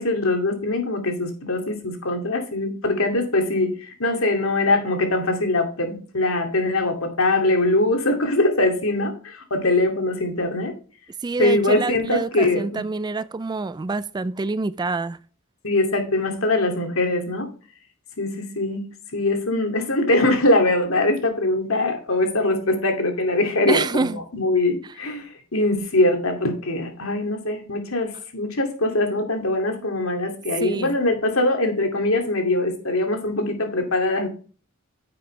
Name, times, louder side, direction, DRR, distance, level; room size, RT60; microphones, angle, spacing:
voice 1, 0.0-10.7 11.4-12.8 15.6-17.5 18.2-18.8 19.1-34.3, left 2 dB, 70° left, 2.5 m, -22 dB
voice 2, 11.2-15.2 23.7-24.2 30.6-31.0, right 3 dB, 20° right, 0.3 m, -26 dB
9.9 x 7.7 x 3.3 m
head